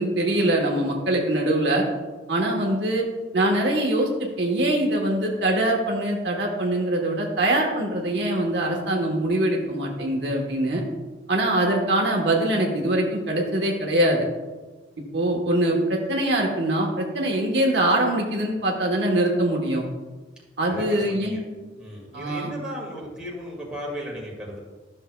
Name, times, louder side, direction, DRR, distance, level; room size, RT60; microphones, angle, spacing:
voice 1, 0.0-1.8 2.3-3.0 3.3-10.8 11.3-14.3 15.1-19.9 20.6-21.4 22.1-22.5, right 1 dB, 70° right, 0 dB, 1.2 m, -23 dB
voice 2, 20.7-21.4 21.7-24.6, equal, 5° right, -4 dB, 1.9 m, -35 dB
12.5 x 6.4 x 2.3 m, 1.3 s
head